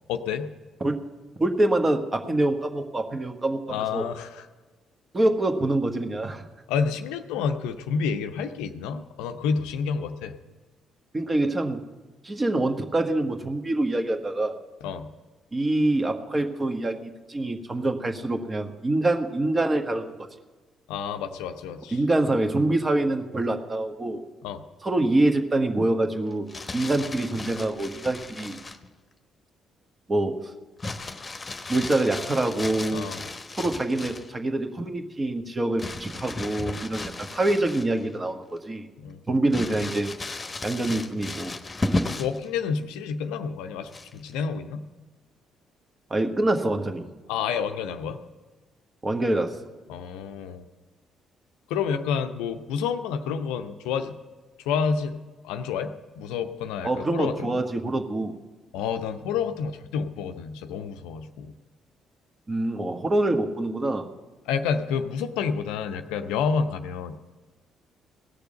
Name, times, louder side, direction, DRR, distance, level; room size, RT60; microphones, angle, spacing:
voice 1, 0.1-0.5 3.7-4.5 6.7-10.4 14.8-15.1 20.9-22.0 24.4-24.6 32.9-33.2 39.0-39.2 42.2-44.8 47.3-48.2 49.9-50.6 51.7-54.1 54.6-57.6 58.7-61.5 64.5-67.2, left 6 dB, 70° left, 9 dB, 0.6 m, -29 dB
voice 2, 1.4-4.1 5.1-6.4 11.1-11.8 12.2-14.6 15.5-20.1 21.9-24.2 24.8-26.5 26.7-28.6 30.1-30.5 31.7-33.1 33.6-38.9 39.3-40.1 40.6-41.5 46.1-47.0 49.0-49.6 56.8-58.3 62.5-64.1, right 2 dB, 30° right, 6 dB, 1.5 m, -25 dB
Crumpling crinkling, 26.3-28.9 30.8-34.3 35.8-38.2 38.6-38.7 39.5-42.5 43.9-44.3, left 2 dB, 30° left, 1.0 m, -34 dB
17.0 x 6.8 x 7.7 m, 1.3 s
figure-of-eight pair, 45°, 0 cm